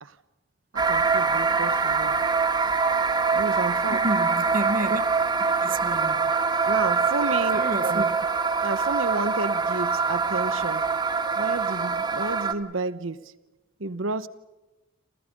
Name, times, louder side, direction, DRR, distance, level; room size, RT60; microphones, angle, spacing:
voice 1, 0.7-2.2 3.3-4.0 6.6-8.0 8.6-10.9 11.3-13.3 13.8-14.3, right 3 dB, 75° right, 1.0 m, -31 dB
sound 1, 0.8-12.5, right 4 dB, 20° right, 1.4 m, -24 dB
voice 2, 3.9-5.1 5.4-6.3 7.5-8.2, right 1 dB, 40° right, 1.1 m, -31 dB
28.5 x 28.0 x 5.4 m
head